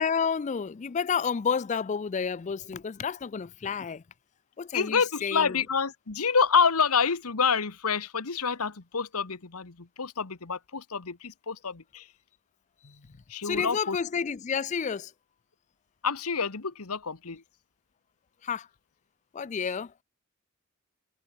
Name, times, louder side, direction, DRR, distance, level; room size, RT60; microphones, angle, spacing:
voice 1, 0.0-4.0 4.6-5.6 13.4-15.1 18.4-18.7 19.3-19.9, left 6 dB, 30° left, 0.4 m, -30 dB
voice 2, 4.7-12.1 12.8-14.0 16.0-17.4, left 5 dB, 85° left, 1.4 m, -28 dB
head